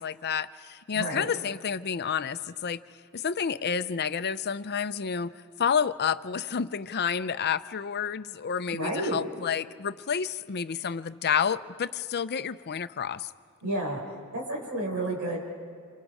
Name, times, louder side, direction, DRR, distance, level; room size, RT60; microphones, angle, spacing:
voice 1, 0.0-2.8 3.1-5.3 5.6-13.3, left 7 dB, 45° left, 13 dB, 0.5 m, -30 dB
voice 2, 0.9-1.3 8.7-9.2 13.6-14.0 14.3-15.4, right 1 dB, 85° right, -2 dB, 5.3 m, -31 dB
29.0 x 27.5 x 4.9 m, 2.2 s
head